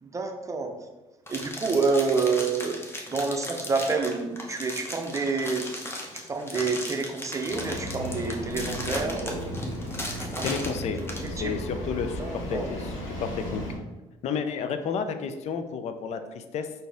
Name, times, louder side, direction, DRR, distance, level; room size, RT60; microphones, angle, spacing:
voice 1, 0.0-0.8 1.3-2.8 3.1-5.9 6.1-9.4 10.2-10.5 11.2-11.6 12.2-12.7, right 4 dB, 25° right, 4 dB, 0.6 m, -28 dB
sound 1, 1.3-11.3, left 1 dB, 20° left, 0.8 m, -36 dB
Engine starting, 7.5-13.7, equal, 80° left, 1.0 m, -35 dB
voice 2, 10.4-11.0 11.3-13.6 14.2-16.7, left 6 dB, 55° left, 9 dB, 0.4 m, -31 dB
4.1 x 2.6 x 3.4 m, 1.1 s
supercardioid pair, 75°, 13 cm